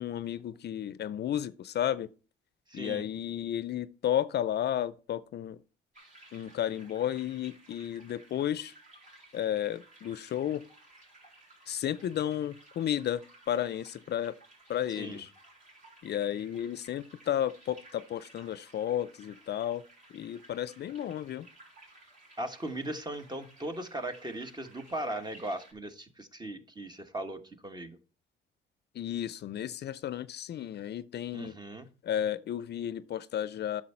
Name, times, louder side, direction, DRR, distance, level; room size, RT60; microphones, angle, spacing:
voice 1, 0.0-2.1 2.7-5.6 6.3-8.7 9.3-10.6 11.7-14.4 14.7-15.3 16.0-19.8 20.1-21.5 28.9-31.5 32.0-33.8, left 10 dB, 55° left, 0.5 m, -33 dB
voice 2, 2.7-3.0 14.9-15.2 22.4-28.0 31.3-31.9, right 1 dB, 20° right, 1.3 m, -38 dB
sound 1, 5.9-25.7, right 2 dB, 40° right, 3.6 m, -57 dB
9.3 x 6.4 x 4.4 m
cardioid pair, 90°, 20 cm